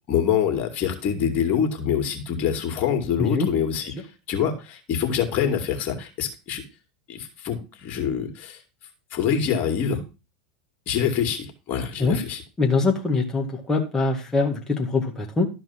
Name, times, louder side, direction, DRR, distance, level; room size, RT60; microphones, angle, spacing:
voice 1, 0.1-6.6 7.1-8.6 9.1-10.0 10.9-12.4, left 8 dB, 45° left, 4 dB, 2.5 m, -25 dB
voice 2, 12.6-15.5, left 3 dB, 15° left, 0 dB, 2.0 m, -23 dB
13.0 x 4.7 x 5.8 m, 0.30 s
hypercardioid pair, 100°, 4 cm